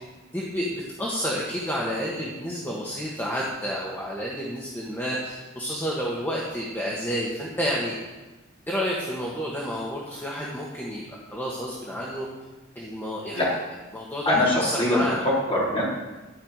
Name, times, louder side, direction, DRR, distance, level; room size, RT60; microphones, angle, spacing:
voice 1, 0.3-8.0 8.7-11.0 11.3-12.3 12.7-13.4 13.9-15.2, equal, 10° left, -5 dB, 1.5 m, -30 dB
voice 2, 14.3-15.9, left 1 dB, 25° left, -6 dB, 3.9 m, -23 dB
12.5 x 5.8 x 7.5 m, 1.1 s
head